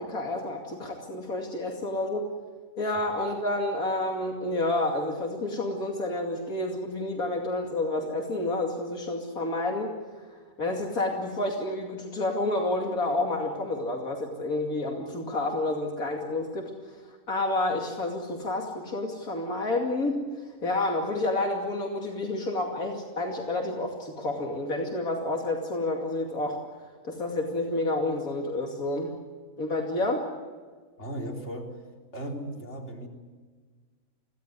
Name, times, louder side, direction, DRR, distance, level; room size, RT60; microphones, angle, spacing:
voice 1, 0.0-2.3 2.8-9.9 10.6-16.9 17.3-26.6 27.1-29.2 29.6-30.3, left 2 dB, 80° left, 0 dB, 3.0 m, -29 dB
voice 2, 31.0-31.8 32.1-33.1, right 1 dB, 50° left, 0 dB, 4.4 m, -36 dB
25.5 x 17.0 x 9.7 m, 1.5 s
omnidirectional pair, 1.5 m